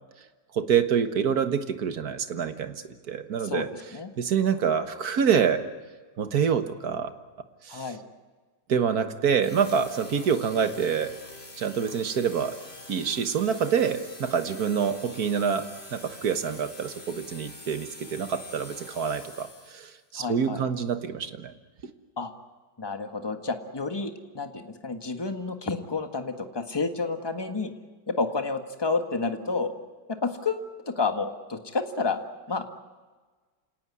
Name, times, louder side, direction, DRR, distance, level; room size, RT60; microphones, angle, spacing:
voice 1, 0.5-2.7 3.1-3.7 4.2-5.6 6.2-7.1 7.6-7.8 8.7-11.2 11.6-12.6 12.9-21.5, right 7 dB, 55° right, 9 dB, 1.7 m, -26 dB
voice 2, 7.7-8.0 20.1-20.7 22.2-22.3 22.8-27.7 28.1-29.7 30.2-32.2 32.5-32.7, left 4 dB, 15° left, 6 dB, 1.4 m, -30 dB
sound 1, 9.4-20.0, left 2 dB, 30° left, 4.0 m, -46 dB
28.0 x 18.0 x 9.8 m, 1.4 s
omnidirectional pair, 2.1 m